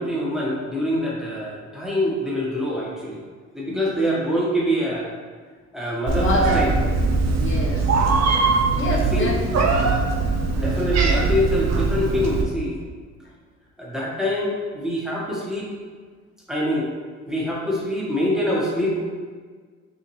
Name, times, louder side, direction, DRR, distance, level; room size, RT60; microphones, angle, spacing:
voice 1, 0.0-3.2 3.5-5.1 5.7-6.7 8.9-9.3 10.6-12.8 13.8-15.7 16.5-16.9 17.2-19.0, equal, ahead, -5 dB, 1.3 m, -25 dB
voice 2, 3.7-4.0 6.2-6.6 7.2-8.0 8.8-9.9, left 2 dB, 40° left, -4 dB, 0.8 m, -28 dB
Meow, 6.1-12.4, right 3 dB, 60° right, 0.7 m, -21 dB
5.6 x 2.8 x 3.1 m, 1.6 s
cardioid pair, 90°, 30 cm